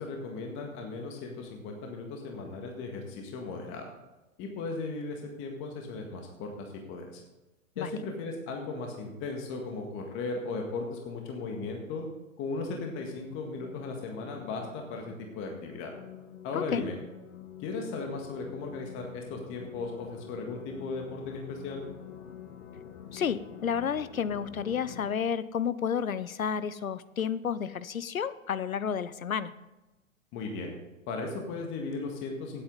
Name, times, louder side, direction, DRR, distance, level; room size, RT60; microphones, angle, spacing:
voice 1, 0.0-3.9 4.4-7.2 7.8-12.0 12.4-15.9 16.4-17.0 17.6-21.9 30.3-30.7 31.1-32.6, left 3 dB, 30° left, 2 dB, 1.9 m, -37 dB
sound 1, 12.4-25.1, left 9 dB, 55° left, 1.4 m, -48 dB
voice 2, 23.1-29.5, left 7 dB, 85° left, 16 dB, 0.8 m, -31 dB
16.5 x 8.7 x 4.0 m, 1.1 s
figure-of-eight pair, 115°, 40 cm